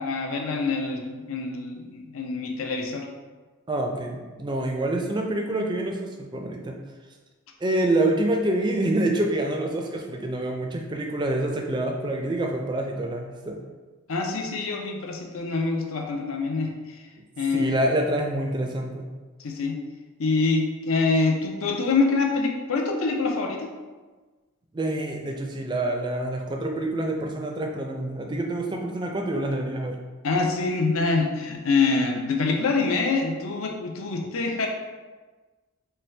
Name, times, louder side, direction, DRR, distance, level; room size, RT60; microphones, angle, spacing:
voice 1, 0.0-3.1 14.1-17.0 17.4-17.8 19.4-19.8 20.2-23.7 30.2-34.7, left 3 dB, 80° left, 2 dB, 0.5 m, -25 dB
voice 2, 3.7-6.8 7.6-13.6 17.5-19.1 24.7-30.0, right 1 dB, 20° right, 2 dB, 0.3 m, -27 dB
4.3 x 2.3 x 3.2 m, 1.3 s
head